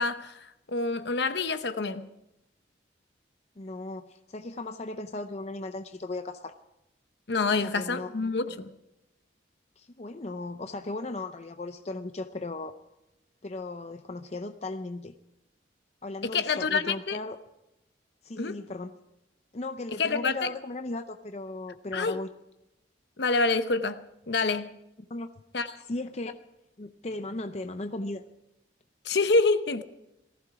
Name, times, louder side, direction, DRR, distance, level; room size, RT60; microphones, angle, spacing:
voice 1, 0.0-2.1 7.3-8.7 16.2-17.2 18.4-18.6 20.0-20.5 21.9-22.2 23.2-24.7 25.5-25.7 29.0-29.8, left 3 dB, 65° left, 0.8 m, -27 dB
voice 2, 3.6-6.5 7.6-8.3 9.8-12.7 13.4-15.1 16.0-17.4 18.2-18.9 19.5-22.3 25.1-25.3 25.9-26.4 26.8-28.2, left 2 dB, 35° left, 0.5 m, -36 dB
18.5 x 14.5 x 4.8 m
head